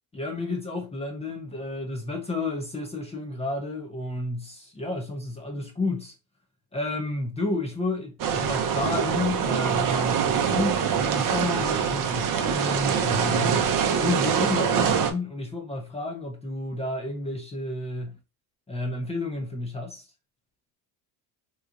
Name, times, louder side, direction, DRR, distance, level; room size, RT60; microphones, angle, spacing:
voice 1, 0.1-6.1 6.7-13.7 14.0-18.2 18.7-20.0, left 2 dB, 15° left, 0.7 m, -31 dB
sound 1, 8.2-15.1, right 7 dB, 45° right, 0.7 m, -24 dB
3.3 x 3.0 x 2.4 m
cardioid pair, 130°, 44 cm